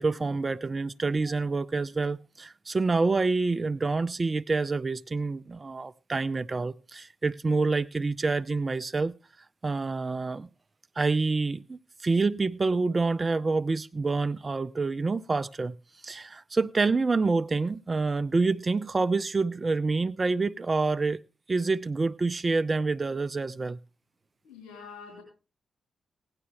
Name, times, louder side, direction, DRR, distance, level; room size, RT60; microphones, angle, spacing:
voice 1, 0.0-9.2 9.6-10.5 11.0-15.8 16.0-21.2 21.5-23.8, right 3 dB, 40° right, 0.5 m, -27 dB
voice 2, 24.4-25.2, left 5 dB, 75° left, 4.1 m, -45 dB
16.5 x 9.8 x 3.4 m
hypercardioid pair, 40°, 0 cm